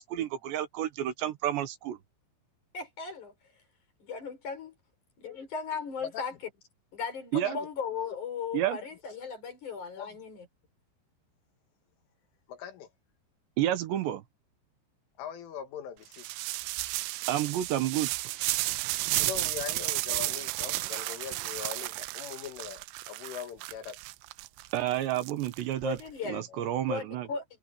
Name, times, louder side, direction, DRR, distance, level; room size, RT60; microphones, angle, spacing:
voice 1, 0.0-2.0 7.3-7.6 8.5-8.8 13.6-14.2 17.3-18.1 24.7-26.0 26.3-27.3, right 12 dB, 70° right, 3.1 m, -30 dB
voice 2, 2.7-3.3 4.1-4.7 5.2-6.3 6.9-10.5 25.8-26.5 26.9-27.6, left 6 dB, 40° left, 6.4 m, -37 dB
voice 3, 7.3-7.7 10.0-10.1 12.5-12.9 15.2-16.3 19.1-24.0 26.5-26.7, left 9 dB, 75° left, 4.7 m, -41 dB
sound 1, 16.1-26.0, right 19 dB, 85° right, 3.3 m, -33 dB
omnidirectional pair, 5.8 m